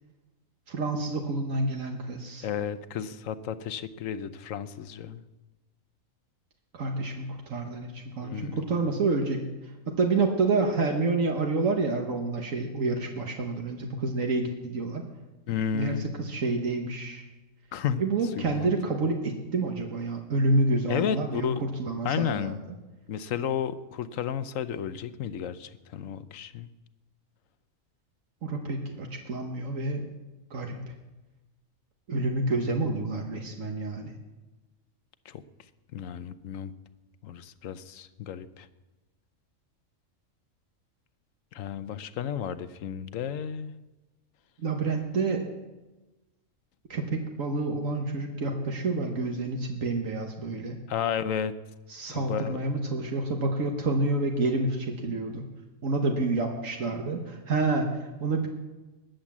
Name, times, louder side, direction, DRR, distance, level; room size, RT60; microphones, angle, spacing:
voice 1, 0.7-2.5 6.7-9.4 10.0-15.0 15.7-17.2 18.0-22.5 28.4-30.1 30.5-30.8 32.1-34.1 44.6-45.5 46.9-50.8 51.9-55.4 55.8-58.5, right 3 dB, 75° right, 2 dB, 1.7 m, -28 dB
voice 2, 2.4-5.2 8.2-8.6 15.5-16.1 17.7-18.0 18.4-18.7 20.9-21.6 22.0-22.6 23.1-26.7 35.3-35.4 35.9-36.7 37.2-38.7 41.5-43.7 50.9-51.5 52.1-52.6, left 8 dB, 75° left, 13 dB, 1.1 m, -32 dB
20.5 x 7.8 x 7.3 m, 1.1 s
omnidirectional pair, 1.4 m